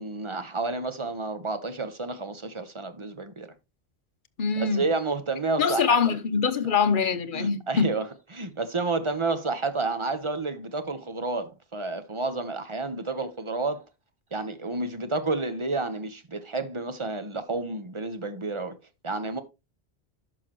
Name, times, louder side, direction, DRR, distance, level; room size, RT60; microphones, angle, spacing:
voice 1, 0.0-3.5 4.6-6.1 7.3-13.9 14.3-18.8 19.0-19.4, right 3 dB, 30° right, 1.0 m, -30 dB
voice 2, 4.4-4.8 5.6-7.9, left 5 dB, 55° left, 0.9 m, -24 dB
11.5 x 6.0 x 3.0 m
omnidirectional pair, 1.1 m